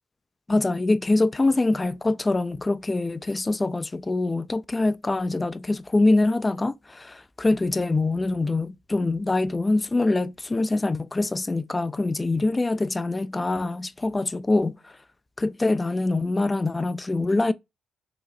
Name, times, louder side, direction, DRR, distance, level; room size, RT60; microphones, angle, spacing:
voice 1, 0.5-14.9 15.4-17.5, left 2 dB, 20° left, 0.4 m, -24 dB
4.7 x 3.0 x 2.4 m
cardioid pair, 90°, 0 cm